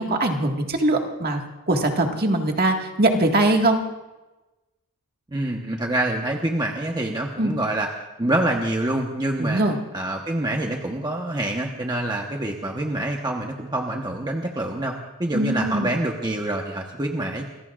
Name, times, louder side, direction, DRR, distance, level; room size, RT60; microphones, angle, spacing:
voice 1, 0.0-1.4 1.7-3.8 7.4-7.5 9.4-9.8 15.3-15.9, right 2 dB, 45° right, 2 dB, 1.8 m, -21 dB
voice 2, 5.3-7.9 8.2-9.6 9.9-14.9 15.2-17.5, right 1 dB, 20° right, 1 dB, 1.1 m, -26 dB
27.0 x 21.0 x 2.5 m, 1.1 s
head